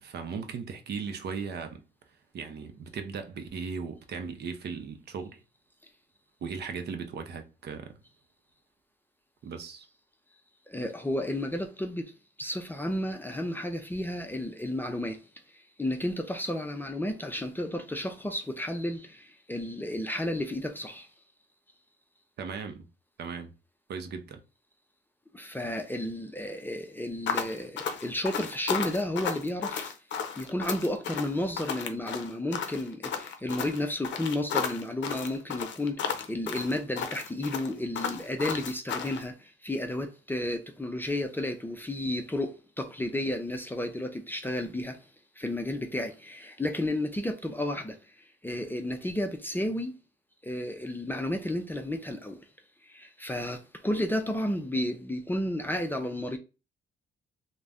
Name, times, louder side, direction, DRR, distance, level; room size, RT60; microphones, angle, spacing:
voice 1, 0.0-1.8 2.3-5.4 6.4-8.0 9.4-9.9 22.4-22.9 23.2-23.5 23.9-24.4, right 5 dB, 55° right, 0.6 m, -37 dB
voice 2, 10.7-12.1 12.4-15.2 15.5-21.1 25.3-29.9 30.4-45.0 45.4-49.9 50.4-52.4 52.8-56.4, left 1 dB, 10° left, 0.4 m, -32 dB
sound 1, 27.3-39.2, left 7 dB, 65° left, 0.5 m, -33 dB
2.5 x 2.1 x 3.4 m
cardioid pair, 90°, 20 cm